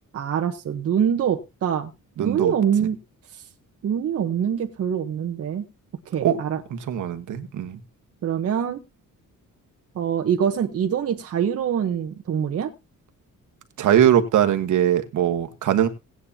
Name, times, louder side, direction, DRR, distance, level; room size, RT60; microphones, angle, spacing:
voice 1, 0.1-1.9 2.2-3.0 3.8-5.7 6.1-6.6 8.2-8.8 9.9-12.7, right 8 dB, 45° right, 1.0 m, -24 dB
voice 2, 2.2-2.5 6.2-6.4 6.7-7.8 13.8-15.9, right 10 dB, 60° right, 1.3 m, -21 dB
17.0 x 9.5 x 2.8 m
cardioid pair, 170°, 33 cm